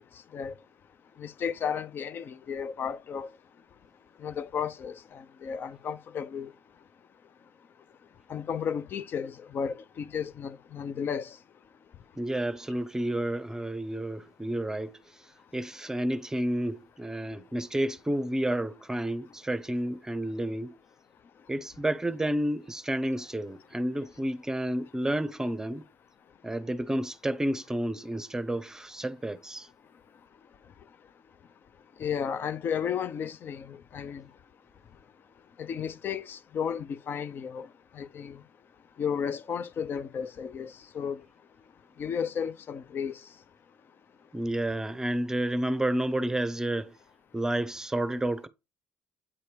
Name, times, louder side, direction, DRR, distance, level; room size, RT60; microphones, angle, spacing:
voice 1, 1.2-3.3 4.2-6.5 8.3-11.3 32.0-34.2 35.6-37.7 38.0-38.4 39.0-41.2 42.0-43.2, left 7 dB, 55° left, 0.6 m, -33 dB
voice 2, 12.2-15.0 15.5-20.7 21.5-25.9 26.4-29.7 44.3-46.9 47.3-48.5, right 1 dB, 15° right, 0.7 m, -30 dB
8.6 x 2.9 x 5.0 m
supercardioid pair, 65°, 4 cm